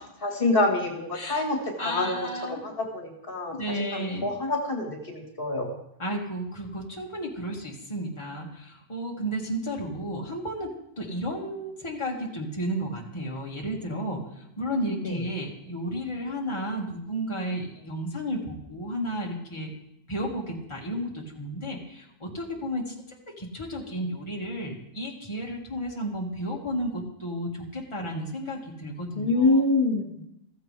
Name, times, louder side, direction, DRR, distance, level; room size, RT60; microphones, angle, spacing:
voice 1, 0.2-3.5 3.8-5.8 15.0-15.2 29.2-30.2, left 2 dB, 60° left, 2 dB, 1.9 m, -26 dB
voice 2, 1.8-2.6 3.5-4.3 6.0-19.7 20.1-29.6, equal, 30° left, -2 dB, 2.0 m, -33 dB
15.0 x 14.5 x 3.4 m, 0.79 s
omnidirectional pair, 1.1 m